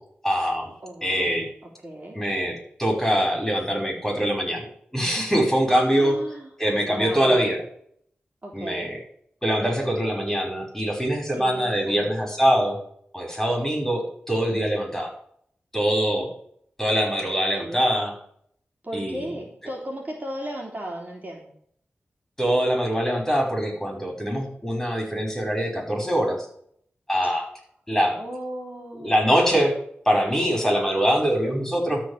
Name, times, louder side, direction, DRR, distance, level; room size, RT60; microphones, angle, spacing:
voice 1, 0.2-0.7 1.0-1.5 2.1-4.7 4.9-6.2 6.6-7.6 8.5-9.0 9.4-12.8 13.1-15.1 15.7-16.3 16.8-18.1 18.9-19.4 22.4-26.4 27.1-27.5 27.9-28.2 28.9-29.7 30.1-32.0, equal, 10° left, 1 dB, 5.5 m, -23 dB
voice 2, 0.8-1.3 1.8-2.2 5.9-6.5 6.8-7.4 8.4-8.9 11.3-12.1 17.6-17.9 18.8-21.5 28.2-29.2, right 1 dB, 40° right, -1 dB, 3.0 m, -36 dB
13.0 x 4.4 x 8.3 m, 0.65 s
cardioid pair, 45°, 4 cm